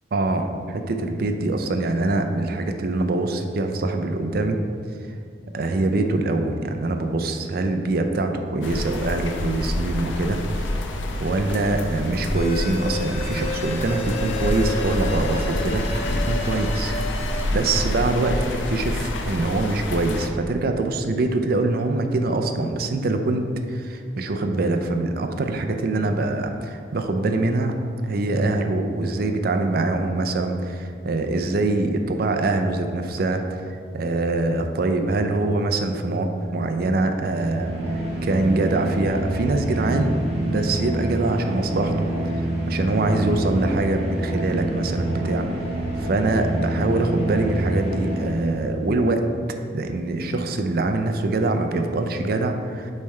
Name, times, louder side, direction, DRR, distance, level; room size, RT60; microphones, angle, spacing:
voice 1, 0.1-4.6 5.5-10.6 11.2-17.2 17.5-27.7 28.0-42.1 42.7-49.3 49.7-52.9, right 2 dB, 55° right, 6 dB, 0.4 m, -24 dB
sound 1, 8.6-20.3, left 1 dB, 90° left, 0.5 m, -28 dB
sound 2, 12.3-17.4, left 2 dB, 35° left, 0.4 m, -32 dB
sound 3, 37.2-48.9, right 1 dB, 35° right, 1.0 m, -27 dB
7.0 x 3.3 x 4.3 m, 2.3 s
head